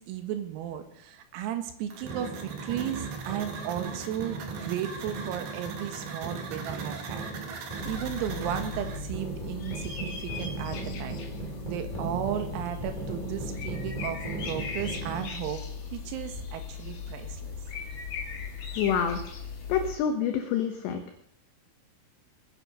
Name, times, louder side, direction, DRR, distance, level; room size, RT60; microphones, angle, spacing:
voice 1, 0.0-11.2 11.6-15.6 15.9-17.6, right 10 dB, 85° right, 7 dB, 4.4 m, -35 dB
sound 1, 1.9-9.0, right 4 dB, 55° right, 3.4 m, -42 dB
sound 2, 2.0-15.2, right 4 dB, 10° right, 3.6 m, -38 dB
sound 3, 7.8-20.0, left 5 dB, 50° left, 3.3 m, -38 dB
voice 2, 18.8-19.2 19.7-21.0, left 8 dB, 70° left, 6 dB, 2.9 m, -27 dB
20.5 x 10.5 x 6.6 m, 0.75 s
omnidirectional pair, 6.0 m